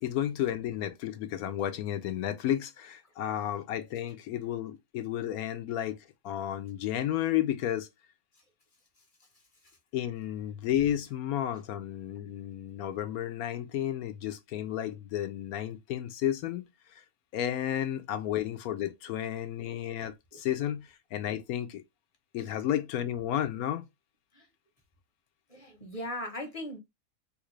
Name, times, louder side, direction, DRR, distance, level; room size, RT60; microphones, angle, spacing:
voice 1, 0.0-6.0 6.2-7.9 9.9-16.7 17.3-21.8 22.3-23.8, left 11 dB, 80° left, 1.0 m, -32 dB
voice 2, 25.5-26.8, left 1 dB, 30° left, 0.8 m, -38 dB
3.5 x 2.4 x 3.1 m
omnidirectional pair, 1.6 m